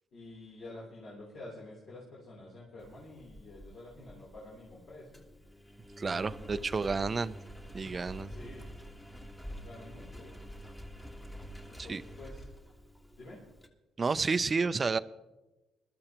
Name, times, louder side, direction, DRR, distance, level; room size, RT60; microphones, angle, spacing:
voice 1, 0.1-5.2 6.4-7.2 8.3-8.7 9.6-10.3 11.7-12.4 13.2-13.4, left 2 dB, 65° left, -5 dB, 3.4 m, -49 dB
Engine, 2.8-13.7, equal, 15° left, 1.6 m, -48 dB
voice 2, 6.0-7.4 7.7-8.3 11.8-12.0 14.0-15.0, right 4 dB, 35° right, 14 dB, 0.5 m, -30 dB
21.0 x 13.0 x 3.0 m, 1.1 s
cardioid pair, 90°, 0 cm